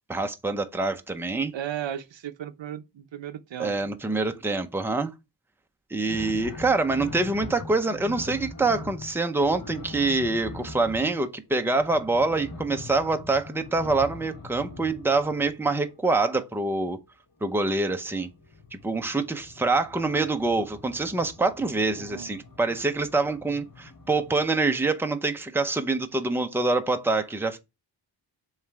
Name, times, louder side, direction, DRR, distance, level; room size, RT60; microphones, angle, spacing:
voice 1, 0.1-1.5 3.6-5.1 5.9-17.0 17.4-18.3 18.7-27.6, right 3 dB, 5° right, 0.7 m, -25 dB
voice 2, 1.5-3.7 21.9-22.4, right 10 dB, 75° right, 0.7 m, -35 dB
sound 1, 6.1-16.0 17.6-24.5, left 3 dB, 45° left, 1.5 m, -42 dB
7.3 x 3.3 x 4.6 m
wide cardioid pair, 95°, 45 cm